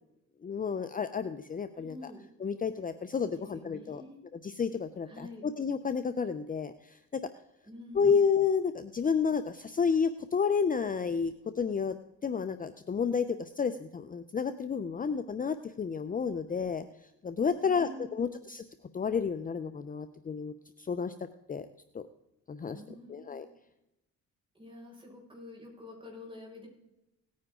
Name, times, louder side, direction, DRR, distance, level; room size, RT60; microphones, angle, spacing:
voice 1, 0.4-2.0 2.4-4.0 4.3-6.7 7.9-11.9 12.2-16.8 17.2-18.6 18.9-20.5 20.8-21.1 21.5-21.7 21.9-22.0 22.5-22.8 23.1-23.5, left 6 dB, 30° left, 11 dB, 0.6 m, -30 dB
voice 2, 1.8-2.2 3.2-4.2 5.1-5.4 7.6-8.2 17.6-18.4 22.7-23.4 24.5-26.7, left 1 dB, 15° right, -2 dB, 5.7 m, -47 dB
18.0 x 9.6 x 3.8 m, 0.91 s
cardioid pair, 90°, 30 cm